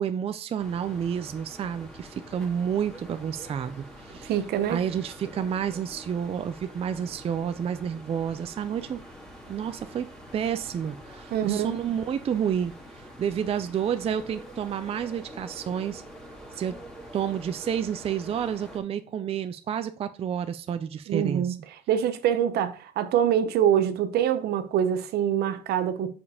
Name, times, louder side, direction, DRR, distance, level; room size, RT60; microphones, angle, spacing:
voice 1, 0.0-4.4 4.7-9.0 9.5-10.1 10.3-16.0 16.5-16.8 17.1-21.6, right 8 dB, 35° right, 0.4 m, -30 dB
sound 1, 0.6-18.8, equal, ahead, 1.9 m, -46 dB
voice 2, 4.3-4.8 11.3-11.8 21.1-21.6 21.9-26.1, right 9 dB, 70° right, 0.8 m, -25 dB
5.3 x 4.8 x 4.9 m
cardioid pair, 110°, 17 cm